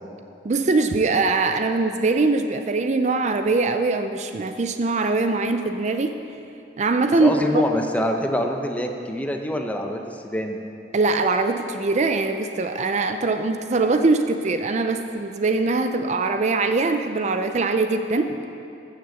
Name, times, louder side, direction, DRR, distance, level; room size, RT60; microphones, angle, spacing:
voice 1, 0.4-6.1 6.8-7.6 10.9-18.5, right 3 dB, 40° right, 8 dB, 0.4 m, -22 dB
voice 2, 7.2-10.6, equal, 10° left, 4 dB, 0.8 m, -25 dB
14.5 x 6.6 x 7.1 m, 2.7 s
head